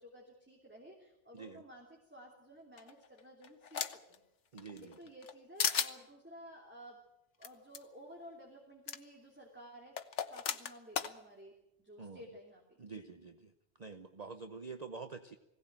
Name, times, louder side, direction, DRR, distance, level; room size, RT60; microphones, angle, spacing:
voice 1, 0.0-3.8 4.1-4.2 4.8-7.0 7.4-13.0, equal, 10° right, -1 dB, 3.1 m, -54 dB
sound 1, 2.8-4.2 4.6-5.3 5.6-5.9 7.4-7.5 7.7-7.8 8.9-9.0 10.0-11.1, left 7 dB, 75° left, 1.4 m, -35 dB
voice 2, 4.5-5.0 12.0-12.2 12.8-13.5 13.8-15.4, right 4 dB, 40° right, 8 dB, 0.9 m, -47 dB
21.0 x 17.0 x 8.9 m, 0.88 s
omnidirectional pair, 1.2 m